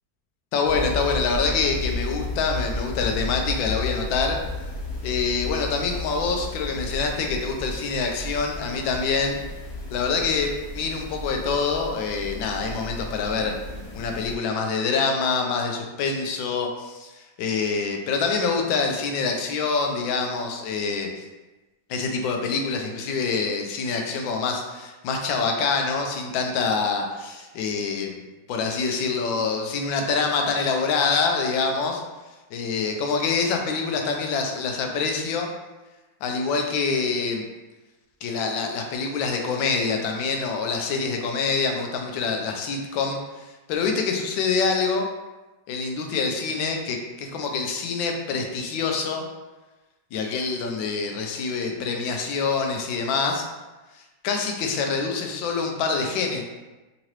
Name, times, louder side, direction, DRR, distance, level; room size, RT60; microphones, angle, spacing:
voice 1, 0.5-4.4 5.0-9.4 9.9-13.5 13.9-21.2 21.9-28.2 28.5-32.0 32.5-35.5 36.2-37.4 38.2-45.1 45.7-49.3 50.1-53.5 54.2-56.4, left 4 dB, 85° left, 2 dB, 1.3 m, -26 dB
sound 1, 0.6-14.3, left 2 dB, 55° left, 1.1 m, -33 dB
3.7 x 3.0 x 2.9 m, 1.1 s
omnidirectional pair, 2.0 m